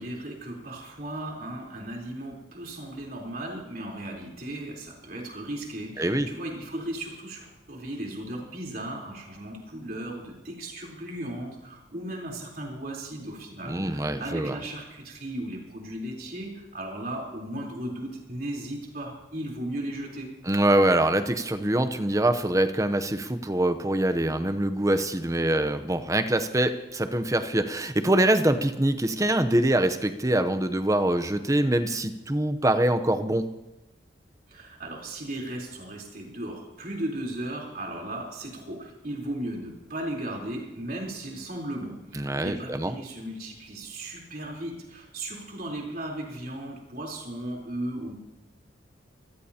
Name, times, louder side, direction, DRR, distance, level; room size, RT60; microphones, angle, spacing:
voice 1, 0.0-20.3 34.5-48.1, right 1 dB, 50° right, -2 dB, 3.8 m, -36 dB
voice 2, 6.0-6.3 13.7-14.5 20.5-33.5 42.1-42.9, right 1 dB, 15° right, 9 dB, 0.7 m, -24 dB
25.0 x 15.5 x 2.9 m, 0.96 s
head